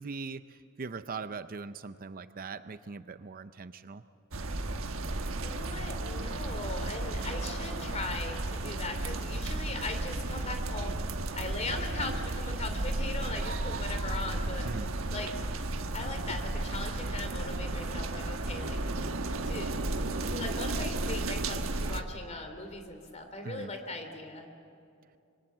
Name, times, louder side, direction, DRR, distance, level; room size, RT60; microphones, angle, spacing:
voice 1, 0.0-4.0 14.6-14.9 23.4-23.7, right 4 dB, 40° right, 12 dB, 0.6 m, -40 dB
sound 1, 4.3-22.0, right 2 dB, 70° right, 1.3 m, -33 dB
voice 2, 5.4-11.0 11.3-14.7 15.1-15.3 15.9-18.8 19.4-19.7 20.3-24.5, left 2 dB, 35° left, 6 dB, 2.9 m, -39 dB
26.0 x 23.5 x 7.4 m, 2.6 s
head